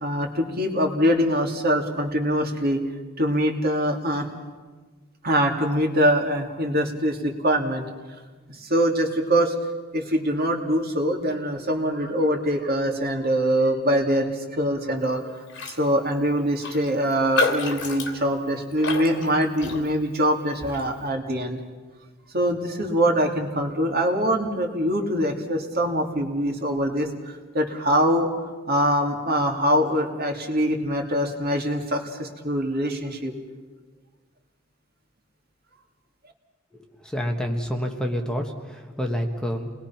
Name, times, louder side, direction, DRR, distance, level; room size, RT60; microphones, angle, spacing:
voice 1, 0.0-2.8 3.2-4.3 5.2-7.9 8.5-9.5 9.9-15.3 15.7-21.6 22.3-27.1 27.5-28.3 28.7-33.3, equal, 50° right, 2 dB, 2.8 m, -23 dB
Raindrop, 15.5-15.8 16.1-16.2 16.6-20.2 20.6-20.9, left 3 dB, 65° left, 2.9 m, -29 dB
voice 2, 37.0-39.7, equal, 5° left, 2 dB, 1.4 m, -28 dB
28.5 x 21.0 x 5.9 m, 1.4 s
head